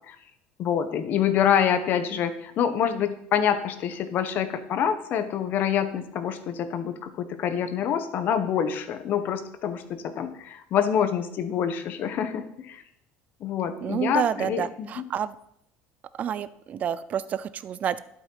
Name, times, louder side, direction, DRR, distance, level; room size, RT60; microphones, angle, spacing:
voice 1, 0.6-12.8 13.4-15.0, left 8 dB, 50° left, 10 dB, 1.4 m, -26 dB
voice 2, 13.8-15.4 16.2-18.0, right 9 dB, 35° right, 16 dB, 0.6 m, -29 dB
11.5 x 8.5 x 5.8 m, 0.75 s
cardioid pair, 140°, 4 cm